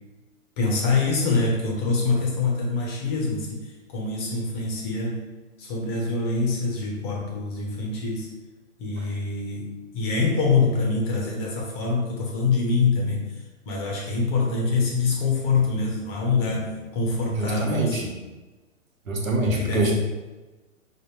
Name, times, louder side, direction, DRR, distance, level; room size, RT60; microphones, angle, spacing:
voice 1, 0.6-3.6 3.9-5.2 5.6-8.3 8.8-13.2 13.7-18.2 19.4-19.9, left 4 dB, 20° left, -2 dB, 0.6 m, -25 dB
voice 2, 17.3-18.1 19.1-19.9, right 2 dB, 90° right, 0 dB, 1.0 m, -24 dB
4.9 x 2.1 x 3.1 m, 1.2 s
hypercardioid pair, 135°, 40 cm